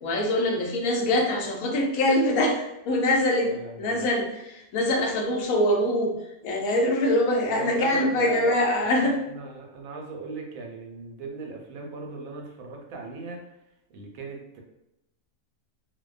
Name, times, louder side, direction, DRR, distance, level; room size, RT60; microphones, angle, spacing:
voice 1, 0.0-3.5 3.8-6.1 6.4-9.2, left 1 dB, 80° left, 1 dB, 1.0 m, -24 dB
voice 2, 3.4-4.0 7.5-13.4 13.9-14.6, right 3 dB, 80° right, 1 dB, 1.0 m, -38 dB
2.6 x 2.1 x 2.3 m, 0.89 s
omnidirectional pair, 1.5 m